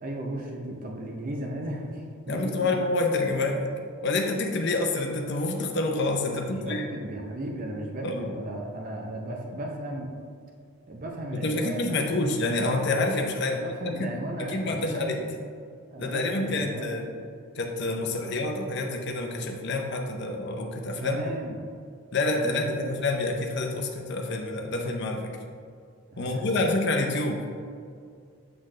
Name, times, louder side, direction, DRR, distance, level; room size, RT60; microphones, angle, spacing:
voice 1, 0.0-2.8 6.3-10.1 10.9-12.0 13.4-15.3 15.9-17.1 18.2-18.3 21.0-21.7 22.4-22.9 26.1-26.5, right 1 dB, 35° right, 0 dB, 0.5 m, -36 dB
voice 2, 2.3-3.7 4.0-6.9 8.0-8.3 11.4-14.1 14.5-15.2 16.0-17.1 17.6-21.2 22.1-25.3 26.2-27.4, left 2 dB, 50° left, 2 dB, 0.6 m, -27 dB
7.8 x 3.9 x 3.2 m, 2.2 s
head